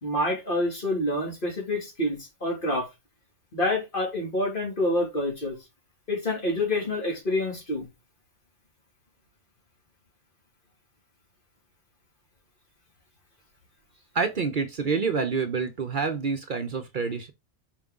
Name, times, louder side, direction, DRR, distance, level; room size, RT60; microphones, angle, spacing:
voice 1, 0.0-2.9 3.5-5.6 6.1-7.9, left 1 dB, 50° left, 2.7 m, -27 dB
voice 2, 14.1-17.3, right 5 dB, 50° right, 0.9 m, -27 dB
5.3 x 5.3 x 3.7 m
omnidirectional pair, 1.2 m